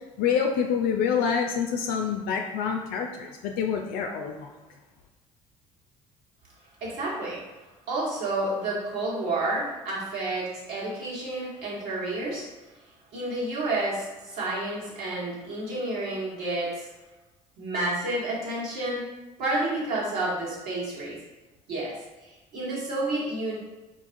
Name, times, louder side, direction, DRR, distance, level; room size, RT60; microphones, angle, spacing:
voice 1, 0.2-4.5, left 7 dB, 60° left, 3 dB, 0.4 m, -27 dB
voice 2, 6.8-7.4 7.9-12.5 13.1-16.9 17.6-19.0 19.4-21.2 21.7-21.9 22.2-23.5, right 2 dB, 60° right, -6 dB, 1.4 m, -30 dB
5.0 x 2.3 x 2.5 m, 1.1 s
hypercardioid pair, 60°, 17 cm